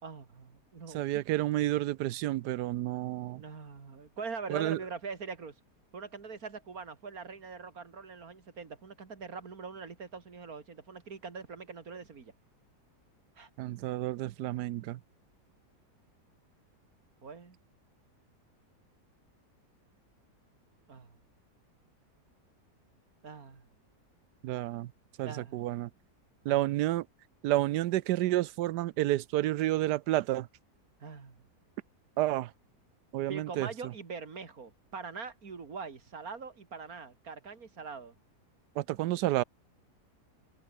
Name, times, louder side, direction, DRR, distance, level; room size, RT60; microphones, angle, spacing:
voice 1, 0.0-1.2 3.3-5.5 5.9-12.3 13.4-13.5 17.2-17.6 20.9-21.2 23.2-23.6 25.2-25.6 26.5-26.7 31.0-31.4 33.3-38.1, right 5 dB, 60° right, 2.7 m, -43 dB
voice 2, 0.9-3.4 4.5-4.8 13.6-15.0 24.4-24.9 25.2-25.9 26.4-27.1 27.4-30.5 32.2-32.5 33.1-33.7 38.8-39.4, right 15 dB, 85° right, 1.2 m, -30 dB
omnidirectional pair, 1.8 m